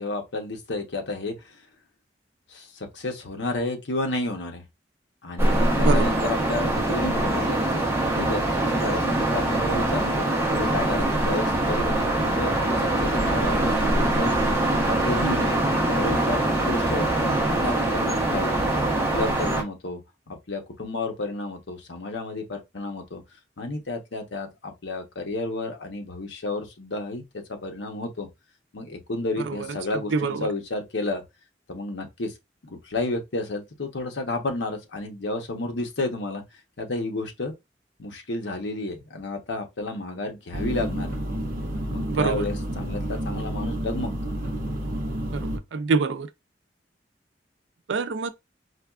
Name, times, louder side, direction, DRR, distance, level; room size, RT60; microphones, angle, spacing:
voice 1, 0.0-1.6 2.5-4.6 5.2-7.8 8.1-14.4 14.8-20.0 20.3-23.2 23.6-28.3 28.7-31.2 31.7-32.3 32.6-36.4 36.8-37.5 38.0-41.2 41.9-44.1, left 2 dB, 80° left, 0.8 m, -31 dB
sound 1, 5.4-19.6, right 1 dB, 15° right, 0.7 m, -23 dB
voice 2, 5.8-6.2 29.5-29.7 30.1-30.5 42.1-42.5 45.3-46.3 47.9-48.3, right 4 dB, 80° right, 0.4 m, -25 dB
sound 2, 40.5-45.6, equal, 50° right, 0.7 m, -30 dB
4.2 x 2.3 x 2.3 m
head